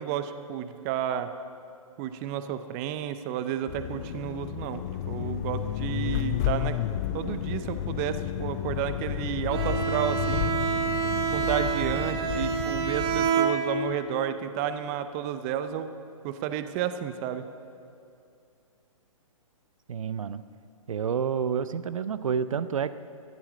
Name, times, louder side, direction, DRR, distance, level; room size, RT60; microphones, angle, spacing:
voice 1, 0.0-1.3 2.0-4.8 5.1-6.7 7.1-10.5 11.3-15.9 16.2-17.4, right 10 dB, 25° right, 10 dB, 0.6 m, -31 dB
sound 1, 3.7-13.3, left 12 dB, 30° left, 0.4 m, -31 dB
Bowed string instrument, 9.5-14.1, right 7 dB, 45° right, 1.9 m, -28 dB
voice 2, 19.9-20.4 20.9-22.9, right 7 dB, 65° right, 13 dB, 0.5 m, -29 dB
13.5 x 11.0 x 6.4 m, 2.5 s
figure-of-eight pair, 130°, 18 cm